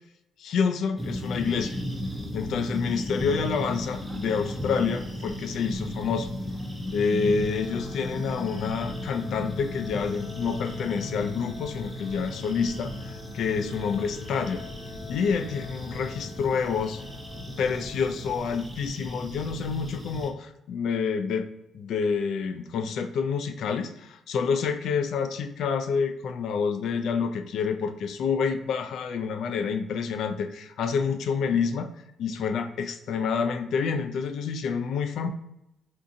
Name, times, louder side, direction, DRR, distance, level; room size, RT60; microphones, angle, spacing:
voice 1, 0.4-1.8 2.3-6.3 6.9-14.6 15.1-17.0 17.6-21.5 21.7-31.9 32.2-35.3, left 5 dB, 60° left, 8 dB, 0.3 m, -28 dB
sound 1, 1.0-20.3, left 1 dB, 5° right, 0.4 m, -36 dB
sound 2, 7.4-18.4, left 5 dB, 20° left, 0.8 m, -44 dB
3.6 x 2.6 x 2.6 m, 0.84 s
cardioid pair, 165°, 0 cm